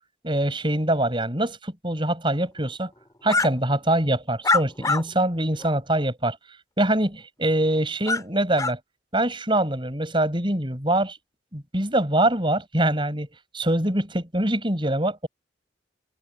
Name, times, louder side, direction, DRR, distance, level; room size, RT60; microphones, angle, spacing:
voice 1, 0.2-2.9 3.2-6.4 6.8-8.8 9.1-11.2 11.5-13.3 13.5-15.3, right 1 dB, 25° right, 7.0 m, -24 dB
sound 1, 3.3-3.5 4.4-5.0 5.6-5.7 8.0-8.2 8.6-8.7, left 3 dB, 20° left, 6.0 m, -23 dB
head